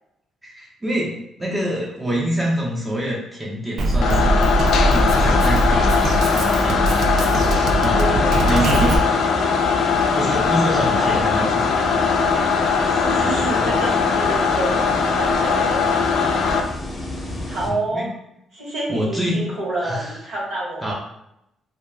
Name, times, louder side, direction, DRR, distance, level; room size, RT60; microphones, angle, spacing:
voice 1, 0.4-4.5 4.9-7.3 7.8-9.6 10.1-12.6 13.2-13.7 17.7-18.1 18.9-19.5 19.8-20.2 20.8-20.9, equal, 15° right, -4 dB, 0.6 m, -26 dB
Drum kit, 3.8-9.0, right 1 dB, 65° right, 0.3 m, -21 dB
sound 1, 4.0-16.6, left 5 dB, 70° left, 0.3 m, -20 dB
sound 2, 4.9-17.7, left 1 dB, 30° left, 0.6 m, -31 dB
voice 2, 7.4-8.4 9.6-9.9 10.6-11.1 12.9-16.4 17.4-18.1 18.5-20.9, right 2 dB, 85° right, -6 dB, 1.3 m, -29 dB
2.2 x 2.1 x 3.4 m, 0.81 s
cardioid pair, 90°, 0 cm